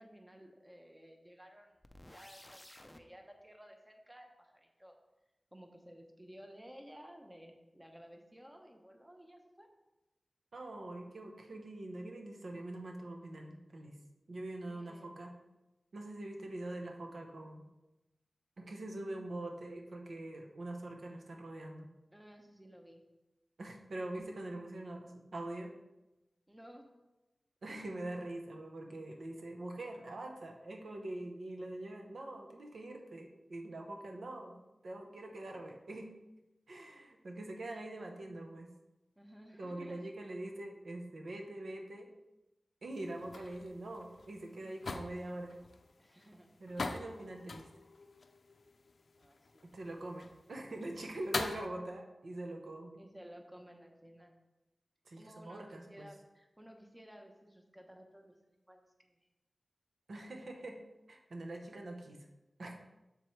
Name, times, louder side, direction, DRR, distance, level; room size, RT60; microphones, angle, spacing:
voice 1, 0.0-1.8 2.1-5.0 5.5-9.7 14.7-15.1 22.1-23.0 26.5-26.9 39.2-40.0 46.0-46.5 49.2-49.6 53.0-54.3 55.2-58.4 58.7-59.3, equal, 10° right, 3 dB, 1.0 m, -55 dB
sound 1, 1.8-3.0, left 1 dB, 15° left, 0.5 m, -54 dB
voice 2, 10.5-13.9 14.3-15.3 15.9-17.6 18.6-21.9 23.6-25.7 27.6-34.6 34.8-36.1 36.7-38.7 39.6-42.1 42.8-45.6 46.6-47.7 49.6-53.0 55.1-56.1 60.1-60.8 61.1-62.3 62.6-62.7, right 1 dB, 85° right, 2 dB, 0.9 m, -44 dB
sound 2, 42.9-51.7, left 3 dB, 80° left, 0.4 m, -44 dB
7.6 x 6.9 x 3.3 m, 0.98 s
wide cardioid pair, 95°, 0 cm